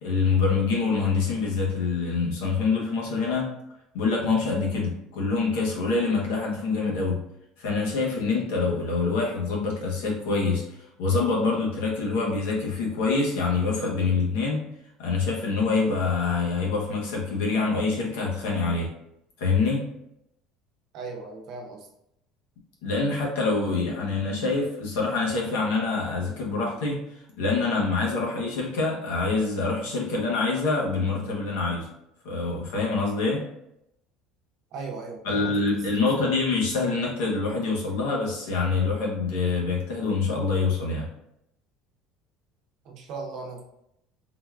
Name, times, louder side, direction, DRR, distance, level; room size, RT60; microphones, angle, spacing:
voice 1, 0.0-3.5 3.9-7.2 7.6-10.6 11.0-14.6 15.0-18.9 19.4-19.9 22.8-27.0 27.4-31.9 32.2-33.5 35.2-41.1, left 4 dB, 85° left, -2 dB, 1.0 m, -25 dB
voice 2, 20.9-21.9 34.7-35.5 36.2-36.3 42.8-43.6, right 4 dB, 65° right, 1 dB, 0.7 m, -37 dB
3.8 x 2.3 x 2.4 m, 0.80 s
supercardioid pair, 95°, 0 cm